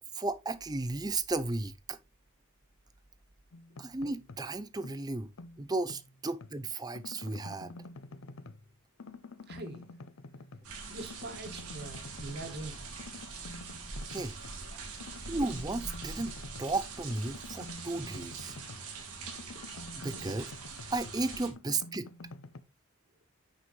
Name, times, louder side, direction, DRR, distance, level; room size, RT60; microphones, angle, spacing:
voice 1, 0.1-2.0 3.8-5.3 5.6-7.7 14.1-14.3 15.3-16.3 16.6-18.6 20.0-20.5 20.9-22.1, right 2 dB, 15° right, 0.5 m, -34 dB
sound 1, 3.5-4.5 4.8-6.6 6.9-8.7 9.0-10.7 11.0-12.6 13.0-14.6 15.0-19.0 19.3-22.6, left 2 dB, 60° left, 0.7 m, -48 dB
voice 2, 9.5-9.8 10.9-12.9 19.5-19.6 20.1-20.3, right 2 dB, 45° right, 2.0 m, -43 dB
sound 2, 10.6-21.5, right 4 dB, 90° right, 2.4 m, -43 dB
9.7 x 5.5 x 3.2 m
head